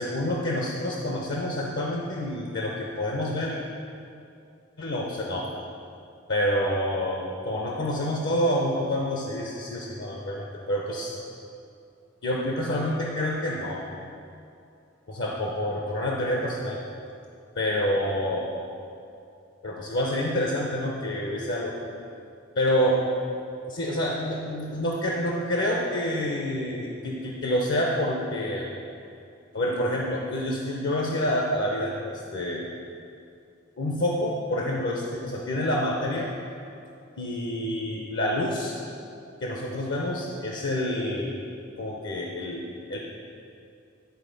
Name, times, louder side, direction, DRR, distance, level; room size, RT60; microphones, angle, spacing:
voice 1, 0.0-3.6 4.8-5.5 6.3-11.2 12.2-13.8 15.1-16.8 17.6-18.5 19.6-21.7 22.5-23.0 23.7-28.7 29.5-32.7 33.8-36.3 37.2-38.8 39.4-41.3 41.8-43.0, left 1 dB, 65° left, -2 dB, 0.7 m, -28 dB
10.5 x 4.1 x 5.1 m, 2.6 s
head